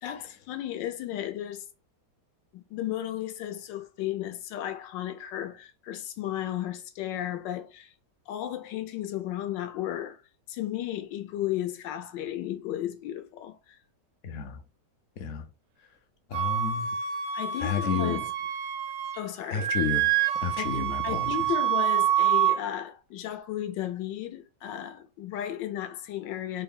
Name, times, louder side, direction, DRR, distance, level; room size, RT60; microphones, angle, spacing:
voice 1, 0.0-1.6 2.5-7.9 8.3-10.2 10.5-13.8 17.3-18.2 19.1-19.7 20.6-26.6, left 12 dB, 85° left, 1.3 m, -34 dB
voice 2, 14.2-14.6 15.2-15.5 16.3-17.0 17.6-18.2 19.5-20.1 20.4-21.4, left 6 dB, 65° left, 0.7 m, -31 dB
Wind instrument woodwind instrument, 16.3-19.2 19.5-22.6, right 10 dB, 75° right, 0.7 m, -27 dB
4.3 x 2.1 x 3.6 m
omnidirectional pair, 1.9 m